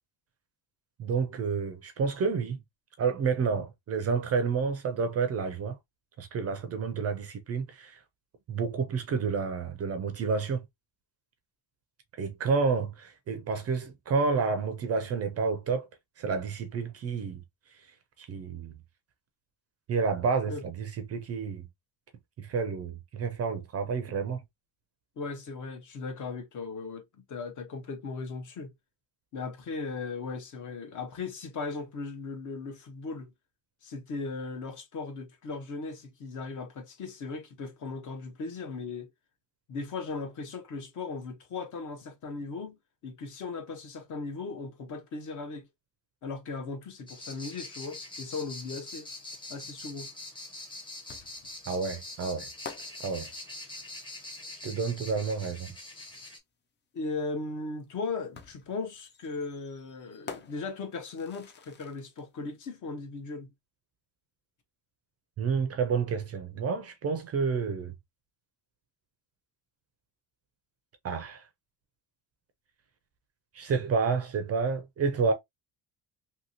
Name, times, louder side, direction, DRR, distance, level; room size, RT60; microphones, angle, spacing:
voice 1, 1.0-2.6 3.0-5.7 6.2-8.0 8.5-10.6 12.2-15.9 16.2-17.4 18.2-18.7 19.9-21.7 22.4-24.4 51.7-52.5 53.0-53.3 54.6-55.7 65.4-67.9 71.0-71.5 73.5-75.3, right 5 dB, 35° right, 0.4 m, -29 dB
voice 2, 25.2-28.7 29.3-33.3 33.8-39.1 39.7-42.8 43.0-45.7 46.2-49.1 49.5-50.1 56.9-63.5, left 4 dB, 45° left, 0.8 m, -37 dB
sound 1, 47.1-56.4, left 2 dB, 10° left, 0.7 m, -44 dB
sound 2, 51.1-54.7 56.2-56.3 58.3-62.3, left 6 dB, 30° left, 0.3 m, -49 dB
2.8 x 2.8 x 2.7 m
cardioid pair, 175°, 43 cm